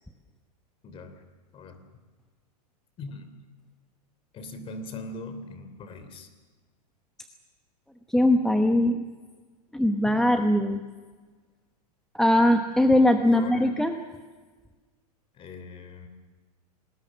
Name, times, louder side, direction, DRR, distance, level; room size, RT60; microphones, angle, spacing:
voice 1, 0.8-1.2 1.5-1.9 3.0-3.3 4.3-6.3 10.0-10.2 13.1-13.8 15.3-16.1, left 2 dB, 25° left, 10 dB, 3.1 m, -40 dB
voice 2, 8.1-9.0 9.7-10.8 12.1-13.9, left 1 dB, 5° left, 5 dB, 1.0 m, -21 dB
27.0 x 20.0 x 7.4 m, 1.4 s
supercardioid pair, 140°, 21 cm